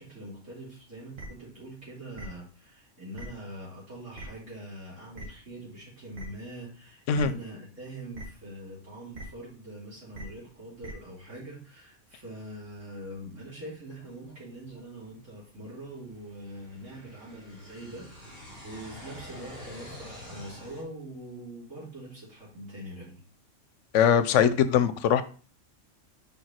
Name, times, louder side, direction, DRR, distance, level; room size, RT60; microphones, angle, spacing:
voice 1, 0.0-23.2, right 1 dB, 70° right, 3.1 m, -43 dB
sound 1, 1.2-1.3 2.2-2.3 3.2-3.3 4.2-4.3 5.1-5.2 6.1-6.2 7.1-7.2 8.1-8.2 9.1-9.2 10.1-10.2 10.8-10.9, right 3 dB, 90° right, 2.0 m, -40 dB
sound 2, 12.0-12.1 12.7-12.8 13.4-20.8, left 1 dB, 50° right, 2.9 m, -47 dB
voice 2, 23.9-25.2, left 8 dB, 75° left, 0.9 m, -21 dB
5.2 x 4.7 x 4.3 m
omnidirectional pair, 1.3 m